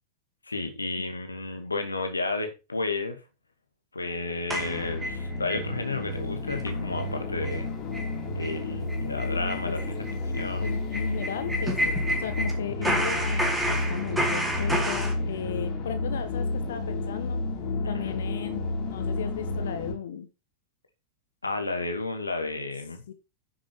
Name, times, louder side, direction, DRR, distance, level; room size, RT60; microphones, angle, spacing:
voice 1, 0.5-3.2 3.9-7.7 8.4-9.9 10.3-10.7 12.8-13.0 17.9-18.2 21.4-23.0, left 3 dB, 80° left, 6 dB, 2.3 m, -32 dB
sound 1, 4.5-19.9, left 2 dB, 40° left, 3.7 m, -31 dB
sound 2, 4.5-5.6 6.0-6.1 6.5-6.7 7.0-7.1 7.4-7.6 7.9-8.1 8.4-8.5 8.9-12.5 12.8-15.1, right 1 dB, 5° right, 4.3 m, -30 dB
voice 2, 10.6-17.4 17.8-20.3 23.1-23.2, left 9 dB, 60° left, 11 dB, 1.1 m, -35 dB
10.0 x 7.6 x 4.6 m, 0.28 s
figure-of-eight pair, 90°, 0 cm